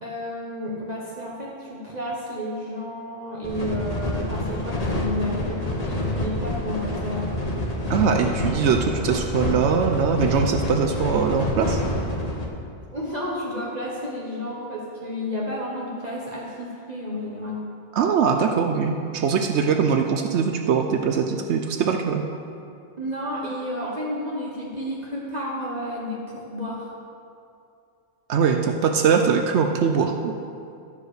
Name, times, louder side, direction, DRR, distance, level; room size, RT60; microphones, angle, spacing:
voice 1, 0.0-7.3 12.9-17.7 23.0-26.9, left 1 dB, 40° right, -5 dB, 1.2 m, -31 dB
sound 1, 3.4-12.5, left 1 dB, 35° left, 1.2 m, -27 dB
voice 2, 7.9-11.8 17.9-22.2 28.3-30.3, right 6 dB, 80° right, 4 dB, 0.9 m, -22 dB
12.0 x 4.9 x 6.4 m, 2.5 s
omnidirectional pair, 1.1 m